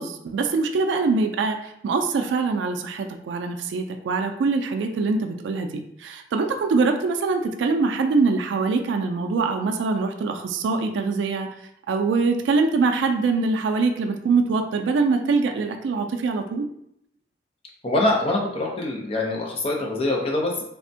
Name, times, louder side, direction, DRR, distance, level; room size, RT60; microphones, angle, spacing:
voice 1, 0.0-5.7 6.0-11.5 11.9-16.7, right 4 dB, 80° right, 5 dB, 0.3 m, -23 dB
voice 2, 17.8-20.6, left 2 dB, 30° left, 0 dB, 0.5 m, -24 dB
3.3 x 2.1 x 2.6 m, 0.73 s
head